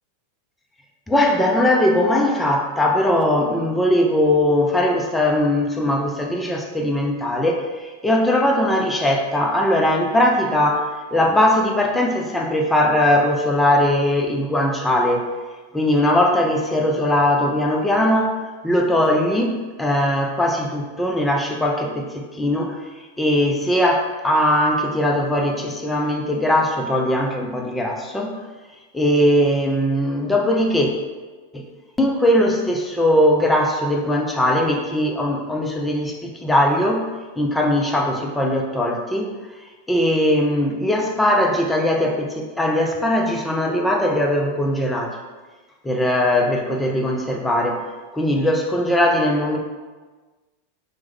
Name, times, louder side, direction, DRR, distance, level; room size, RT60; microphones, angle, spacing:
voice 1, 1.1-15.3 15.7-22.8 23.2-28.4 28.9-30.9 31.5-31.7 32.0-37.1 37.4-39.3 39.9-45.2 45.8-47.8 48.1-49.6, left 1 dB, 5° left, 0 dB, 0.4 m, -20 dB
3.0 x 2.1 x 3.3 m, 1.3 s
figure-of-eight pair, 90°, 0 cm